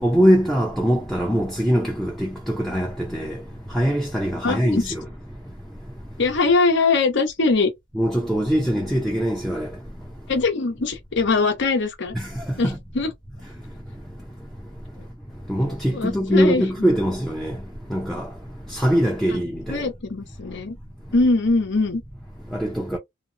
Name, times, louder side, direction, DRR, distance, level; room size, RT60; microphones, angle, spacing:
voice 1, 0.0-3.4 3.7-5.0 8.0-9.7 12.2-12.3 12.6-12.8 15.5-17.6 17.9-18.3 18.7-19.8 22.5-23.0, equal, ahead, 0.5 m, -22 dB
voice 2, 4.4-4.9 6.2-7.7 10.3-12.1 12.6-13.1 15.9-16.6 19.7-20.8 21.1-22.0, left 3 dB, 60° left, 0.8 m, -21 dB
2.9 x 2.1 x 2.5 m
head